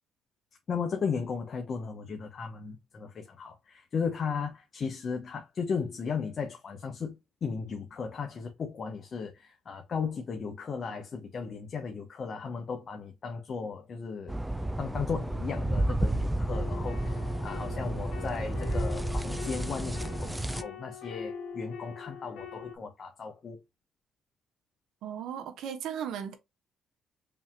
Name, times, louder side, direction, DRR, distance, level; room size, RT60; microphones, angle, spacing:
voice 1, 0.7-14.3 14.8-23.6, left 5 dB, 50° left, 0.8 m, -36 dB
sound 1, 14.3-20.6, right 1 dB, 10° right, 0.4 m, -31 dB
sound 2, 16.5-22.8, left 6 dB, 80° left, 1.2 m, -42 dB
voice 2, 25.0-26.3, right 8 dB, 85° right, 0.9 m, -36 dB
5.4 x 2.9 x 2.3 m
cardioid pair, 90°, 0 cm